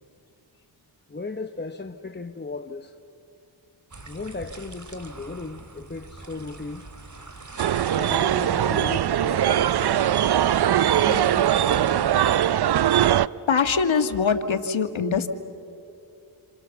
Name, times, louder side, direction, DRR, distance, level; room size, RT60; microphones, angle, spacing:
voice 1, 1.1-3.0 4.1-6.9 7.9-10.0 10.8-12.1, left 3 dB, 20° left, 1.0 m, -36 dB
sound 1, 3.9-12.4, right 3 dB, 35° right, 2.5 m, -42 dB
sound 2, 7.6-13.3, right 11 dB, 50° right, 0.6 m, -21 dB
voice 2, 13.5-15.3, left 5 dB, 65° left, 1.8 m, -22 dB
28.0 x 26.0 x 7.2 m
supercardioid pair, 40°, 50 cm